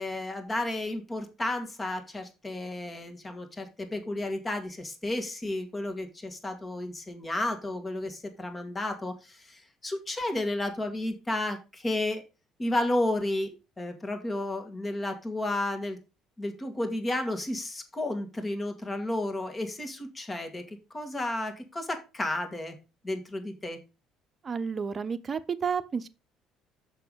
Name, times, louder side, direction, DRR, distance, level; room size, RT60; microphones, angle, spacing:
voice 1, 0.0-12.2 12.6-16.0 16.4-22.8 23.0-23.8, left 1 dB, 25° left, 2.2 m, -32 dB
voice 2, 24.4-26.1, right 6 dB, 35° right, 0.8 m, -31 dB
6.8 x 5.8 x 5.3 m
hypercardioid pair, 60°, 0 cm